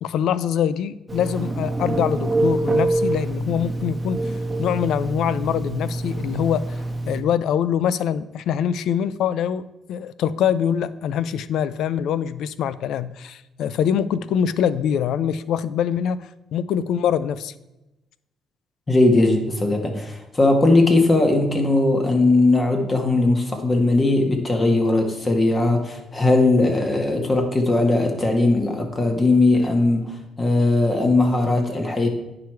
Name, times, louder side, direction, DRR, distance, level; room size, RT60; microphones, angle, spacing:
voice 1, 0.0-4.3 4.6-6.8 7.1-17.5, left 9 dB, 80° left, 16 dB, 0.4 m, -24 dB
Telephone, 1.1-7.2, right 2 dB, 15° right, 1.1 m, -25 dB
voice 2, 18.9-32.1, left 2 dB, 30° left, 4 dB, 1.7 m, -19 dB
9.7 x 4.8 x 4.6 m, 0.97 s
cardioid pair, 90°, 0 cm